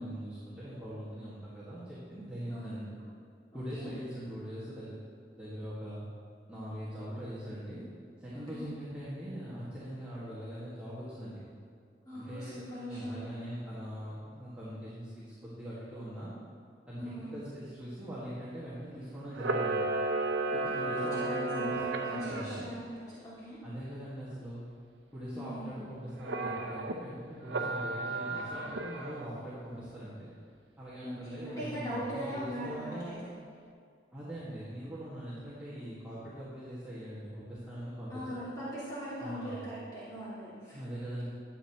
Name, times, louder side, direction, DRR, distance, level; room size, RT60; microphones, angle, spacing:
voice 1, 0.0-2.9 3.5-5.1 5.4-6.1 6.5-7.8 8.2-11.4 12.1-12.6 12.9-16.3 16.9-19.9 20.4-22.7 23.6-24.7 25.1-30.3 30.8-33.2 34.1-38.4 39.2-39.7 40.7-41.3, equal, 10° right, -11 dB, 1.8 m, -42 dB
voice 2, 2.5-3.1 3.5-3.9 8.3-8.7 12.0-13.3 17.0-17.3 20.7-22.9 23.2-23.6 25.3-25.8 31.0-33.1 38.1-40.8, equal, 20° left, -11 dB, 2.5 m, -40 dB
Camera, 19.3-22.6 26.2-27.0 27.5-29.3, right 3 dB, 80° right, 0.6 m, -33 dB
12.5 x 8.4 x 3.0 m, 2.3 s
head